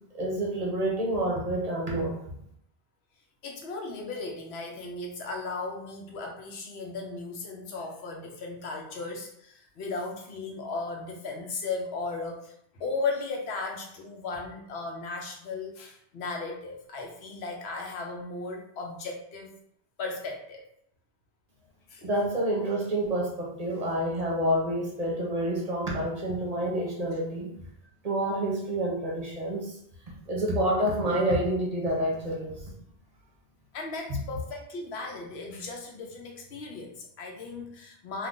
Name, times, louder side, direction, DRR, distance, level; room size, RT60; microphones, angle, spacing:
voice 1, 0.1-2.2 22.0-27.5 28.0-29.7 30.3-32.5 34.1-34.2, right 1 dB, 45° right, -2 dB, 0.7 m, -28 dB
voice 2, 3.4-19.5 20.0-20.6 21.9-22.0 33.7-38.3, left 3 dB, 90° left, 1 dB, 0.9 m, -36 dB
2.5 x 2.4 x 3.6 m, 0.73 s
omnidirectional pair, 1.0 m